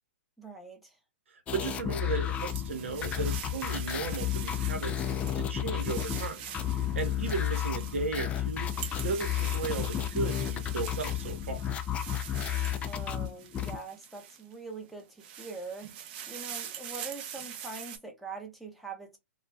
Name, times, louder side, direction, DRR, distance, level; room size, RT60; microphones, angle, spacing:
voice 1, 0.4-1.0 12.9-15.9 16.3-19.2, right 3 dB, ahead, 0.7 m, -43 dB
voice 2, 1.3-5.0 5.3-6.4 6.9-8.7 9.0-11.6, right 4 dB, 75° right, 0.8 m, -35 dB
sound 1, 1.5-13.8, left 11 dB, 20° left, 0.3 m, -32 dB
sound 2, 1.9-14.5 15.0-18.0, right 9 dB, 45° right, 0.5 m, -44 dB
2.3 x 2.1 x 3.2 m
hypercardioid pair, 125°, 7 cm